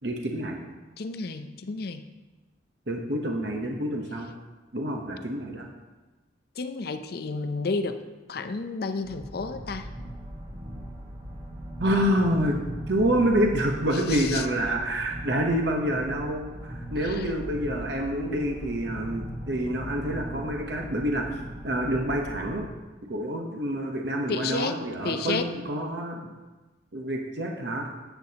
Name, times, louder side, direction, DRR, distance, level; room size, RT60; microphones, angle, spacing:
voice 1, 0.0-0.6 2.9-4.3 4.7-5.7 11.8-12.6 12.9-21.3 21.6-22.7 23.1-26.3 26.9-27.9, right 1 dB, 60° right, 1 dB, 0.9 m, -27 dB
voice 2, 1.0-2.0 6.6-8.0 8.3-9.9 14.1-14.5 17.0-17.3 24.3-25.5, left 4 dB, 55° left, 9 dB, 0.5 m, -31 dB
sound 1, 9.0-22.7, equal, 30° right, 1.3 m, -39 dB
10.5 x 8.1 x 2.9 m, 1.2 s
head